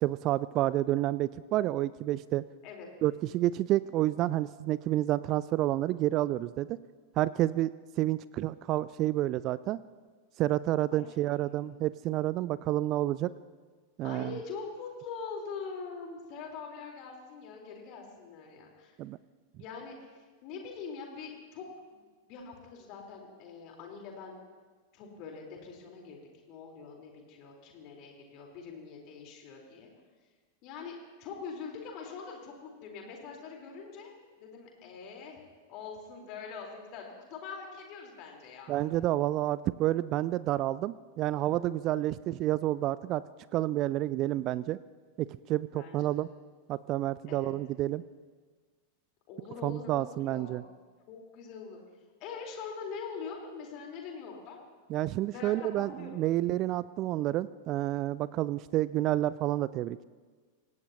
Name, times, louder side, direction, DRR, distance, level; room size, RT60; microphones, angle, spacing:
voice 1, 0.0-2.4 3.0-6.8 7.2-7.7 8.0-9.8 10.4-13.3 14.0-14.4 19.0-19.2 38.7-43.2 43.5-44.8 45.2-46.3 46.7-48.0 49.6-50.6 54.9-60.1, right 15 dB, 35° right, 18 dB, 0.4 m, -29 dB
voice 2, 11.4-11.8 14.0-19.0 19.5-20.1 20.4-24.4 24.9-26.2 26.5-29.9 30.6-35.4 35.7-38.8 45.7-46.2 47.3-47.5 49.3-50.7 51.1-51.8 52.2-54.6 55.3-56.2, left 5 dB, 40° left, 0 dB, 4.1 m, -43 dB
26.0 x 18.5 x 3.0 m, 1.4 s
figure-of-eight pair, 90°, 0 cm